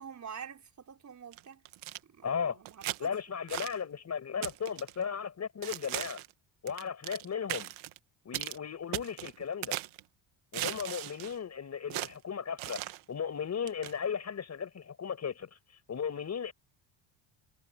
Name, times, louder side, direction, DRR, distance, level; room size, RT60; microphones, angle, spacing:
voice 1, 0.0-1.6 2.0-3.4, right 7 dB, 35° right, 4.4 m, -47 dB
sound 1, 1.3-2.0 2.7-3.0 3.5-3.8 4.4-4.9 5.6-6.3 6.7-7.2 7.5-8.0 8.3-8.6 8.9-10.0 10.5-11.4 11.9-12.1 12.6-13.0 13.7-13.9, right 15 dB, 75° right, 1.6 m, -38 dB
voice 2, 2.2-2.6 3.0-6.2 6.6-7.7 8.3-9.8 10.5-12.8 13.1-15.6 15.9-16.5, left 7 dB, 30° left, 5.6 m, -36 dB
cardioid pair, 140°, 49 cm